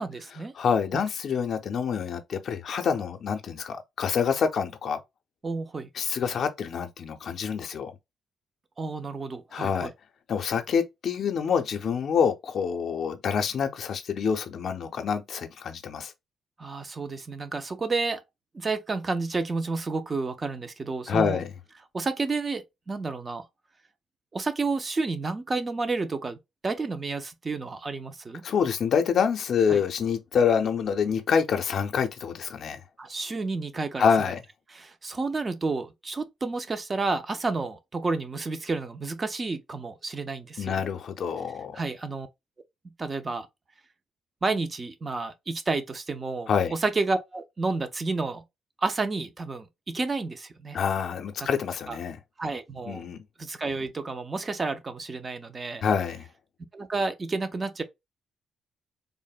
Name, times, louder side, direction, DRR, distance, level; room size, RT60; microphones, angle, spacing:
voice 1, 0.0-0.5 0.9-1.0 5.4-5.9 8.8-9.9 16.6-18.2 18.5-21.4 21.9-23.5 24.3-28.4 29.7-29.8 33.0-34.1 34.7-40.8 41.7-42.3 43.0-43.5 44.4-48.4 48.8-50.8 51.9-52.0 52.4-53.1 53.4-55.9 56.7-57.8, right 3 dB, 30° right, 0.5 m, -30 dB
voice 2, 0.6-5.0 6.0-7.9 9.5-9.9 10.3-16.1 21.1-21.5 28.4-32.8 34.0-34.4 40.6-41.8 46.5-46.7 50.7-52.2 52.9-53.2 55.8-56.3, left 6 dB, 60° left, 0.5 m, -26 dB
3.5 x 2.0 x 2.3 m
cardioid pair, 90°, 0 cm